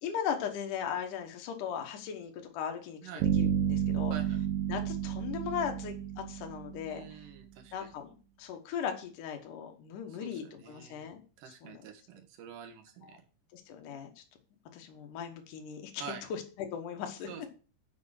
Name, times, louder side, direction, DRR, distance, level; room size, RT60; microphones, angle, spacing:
voice 1, 0.0-4.1 4.7-7.1 7.7-8.1 8.4-11.2 11.6-11.8 13.1-13.2 13.5-14.2 14.7-16.0 16.3-17.5, left 8 dB, 75° left, 3 dB, 1.9 m, -38 dB
sound 1, 3.2-7.2, right 9 dB, 80° right, 3.3 m, -31 dB
voice 2, 4.1-4.4 6.9-7.9 10.1-11.1 11.4-13.2 16.0-16.2 17.3-17.5, right 8 dB, 65° right, 4 dB, 2.3 m, -47 dB
6.9 x 6.4 x 6.4 m, 0.36 s
omnidirectional pair, 5.5 m